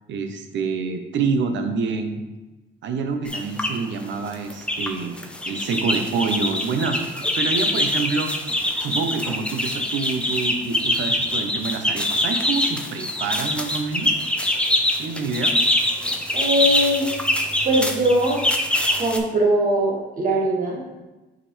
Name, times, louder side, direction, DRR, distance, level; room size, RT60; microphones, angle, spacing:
voice 1, 0.1-2.2 2.8-8.3 8.8-14.2 15.0-15.6, right 4 dB, 70° right, 6 dB, 0.7 m, -27 dB
sound 1, 3.2-3.7 4.3-4.9 5.2-19.2, left 1 dB, 5° left, 0.6 m, -24 dB
voice 2, 16.3-17.1 17.6-18.4 19.0-20.8, right 1 dB, 45° right, -3 dB, 1.7 m, -21 dB
6.0 x 5.0 x 3.2 m, 1.1 s
cardioid pair, 90°, 20 cm